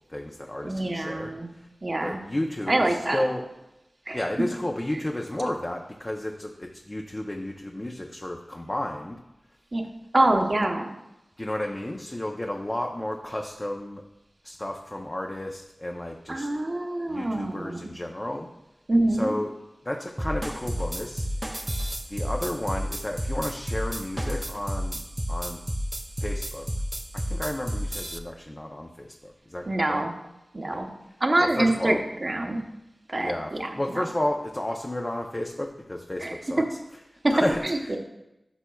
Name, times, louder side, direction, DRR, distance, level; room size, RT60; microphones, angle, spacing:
voice 1, 0.1-1.7 2.0-3.4 4.1-9.2 11.4-14.0 14.4-16.5 17.1-18.5 19.2-19.5 19.8-21.3 22.1-25.0 25.3-25.6 26.2-26.7 27.1-30.0 30.7-30.8 31.4-32.0 33.1-36.6 37.3-38.0, left 1 dB, 30° left, 1 dB, 0.7 m, -32 dB
voice 2, 0.6-1.5 1.8-2.2 2.7-3.2 4.1-4.2 9.7-9.8 10.1-10.9 16.3-17.9 18.9-19.3 29.7-30.1 30.5-30.9 31.2-32.6 33.1-34.0 36.2-36.4 37.2-37.3 37.6-38.0, right 1 dB, 50° right, 4 dB, 0.9 m, -25 dB
sound 1, 20.2-28.2, equal, 20° right, 0.6 m, -31 dB
11.0 x 5.9 x 2.3 m, 0.93 s
cardioid pair, 40°, 0 cm